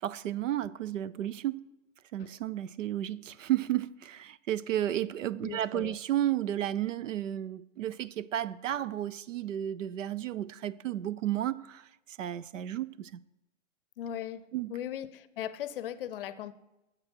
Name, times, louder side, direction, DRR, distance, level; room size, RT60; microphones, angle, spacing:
voice 1, 0.0-1.6 2.1-13.2 14.5-14.7, right 12 dB, 75° right, 0.6 m, -33 dB
voice 2, 5.4-6.0 14.0-14.4 14.7-16.5, left 10 dB, 45° left, 0.6 m, -38 dB
11.5 x 7.5 x 4.4 m
hypercardioid pair, 145°, 38 cm